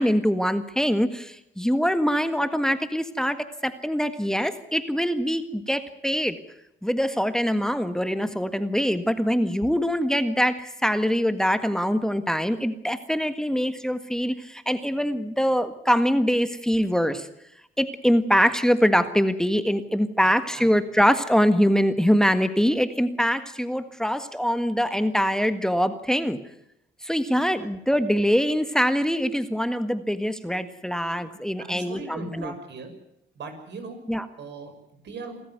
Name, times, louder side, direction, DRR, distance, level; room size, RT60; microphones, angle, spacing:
voice 1, 0.0-3.4 3.6-6.4 6.8-17.3 17.8-26.4 27.0-32.5 34.1-34.2, equal, 5° left, 10 dB, 1.6 m, -23 dB
voice 2, 31.6-32.9 33.3-34.0 34.4-35.4, right 4 dB, 65° right, 6 dB, 6.4 m, -38 dB
27.0 x 14.0 x 9.4 m, 0.77 s
cardioid pair, 90°, 20 cm